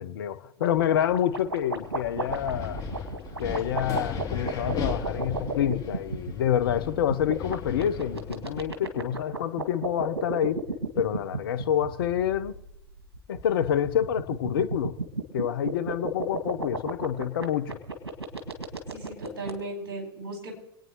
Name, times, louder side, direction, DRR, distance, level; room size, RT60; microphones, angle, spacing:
voice 1, 0.0-2.8 3.4-10.6 11.0-12.6 13.3-15.0 15.3-17.8, left 10 dB, 60° left, 0.9 m, -27 dB
sound 1, 0.6-19.5, right 3 dB, 80° right, 1.9 m, -33 dB
Wind, 1.7-8.6, left 6 dB, 30° left, 3.2 m, -37 dB
voice 2, 18.9-20.6, right 2 dB, 65° right, 4.7 m, -36 dB
27.0 x 9.2 x 3.1 m
figure-of-eight pair, 90°, 13 cm